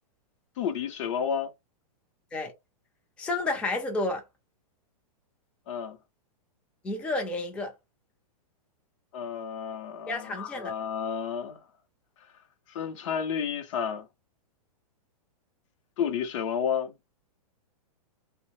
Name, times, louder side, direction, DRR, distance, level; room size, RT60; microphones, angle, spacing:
voice 1, 0.6-1.5 5.7-6.0 9.1-11.6 12.7-14.1 16.0-16.9, left 7 dB, 50° left, 0.6 m, -31 dB
voice 2, 3.2-4.2 6.8-7.7 10.1-10.7, left 2 dB, 5° left, 0.4 m, -30 dB
2.6 x 2.0 x 3.0 m
hypercardioid pair, 140°, 20 cm